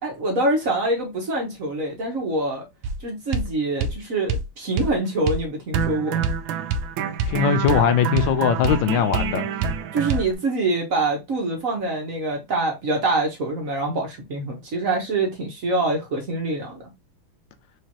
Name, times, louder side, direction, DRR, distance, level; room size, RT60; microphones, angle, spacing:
voice 1, 0.0-2.7 3.0-6.2 9.9-16.9, right 2 dB, 50° right, 1.3 m, -25 dB
sound 1, 2.8-3.0 3.3-3.5 3.8-4.0 4.3-4.5 4.8-4.9 5.3-5.4 5.7-10.3, right 5 dB, 80° right, 1.4 m, -26 dB
voice 2, 7.3-9.5, left 7 dB, 75° left, 1.3 m, -20 dB
4.9 x 3.2 x 2.9 m
omnidirectional pair, 2.2 m